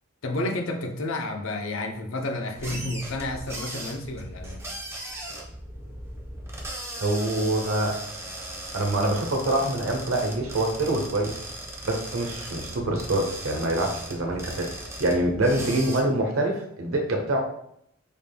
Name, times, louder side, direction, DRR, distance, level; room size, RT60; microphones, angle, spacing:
voice 1, 0.2-4.6, left 2 dB, 70° left, 3 dB, 0.7 m, -31 dB
sound 1, 2.5-16.0, right 1 dB, 15° right, 0.7 m, -38 dB
voice 2, 7.0-8.0 8.7-11.3 11.8-17.4, right 1 dB, 85° right, 2 dB, 0.9 m, -25 dB
5.1 x 3.5 x 2.2 m, 0.73 s
head